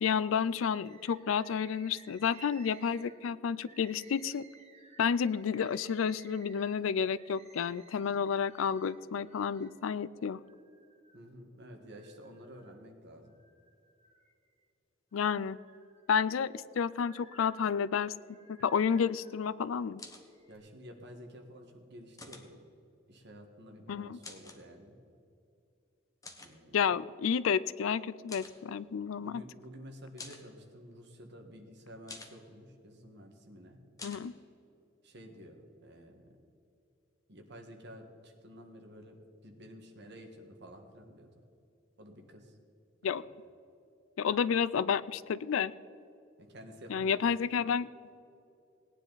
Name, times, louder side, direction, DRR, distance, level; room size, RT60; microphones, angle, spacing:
voice 1, 0.0-4.4 5.0-10.4 15.1-15.6 16.1-18.1 18.5-20.0 23.9-24.2 26.7-29.4 34.0-34.3 43.0-43.2 44.2-45.7 46.9-47.9, left 7 dB, 80° left, 18 dB, 0.4 m, -30 dB
Bird, 0.8-9.8 10.3-11.3 11.8-12.8 13.3-14.6 15.1-19.4 20.1-20.6, right 4 dB, 35° right, 1.3 m, -59 dB
voice 2, 11.1-13.3 20.5-22.6 23.1-25.0 26.4-26.9 29.2-33.8 35.0-36.3 37.3-39.2 39.4-41.3 42.0-42.6 43.0-43.2 46.4-47.3, equal, 60° right, 3 dB, 1.6 m, -51 dB
sound 1, 20.0-20.3 22.2-22.5 24.2-24.6 26.2-26.5 28.3-28.6 30.2-30.5 32.1-32.4 34.0-34.3, left 3 dB, 15° left, 1.1 m, -47 dB
18.0 x 9.9 x 4.0 m, 2.6 s
head